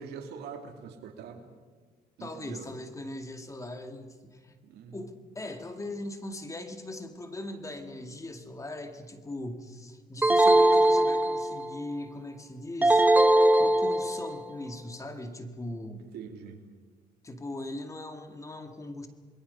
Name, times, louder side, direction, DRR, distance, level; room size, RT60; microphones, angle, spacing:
voice 1, 0.0-1.5 2.2-2.7 4.6-5.0 16.1-16.6, right 6 dB, 75° right, 5 dB, 2.7 m, -43 dB
voice 2, 2.2-4.6 4.9-13.1 13.6-16.1 17.2-19.1, left 1 dB, 20° left, 6 dB, 2.1 m, -40 dB
sound 1, 10.2-11.8 12.8-14.4, right 1 dB, 10° right, 1.0 m, -21 dB
27.5 x 21.5 x 5.6 m, 1.5 s
cardioid pair, 110°, 17 cm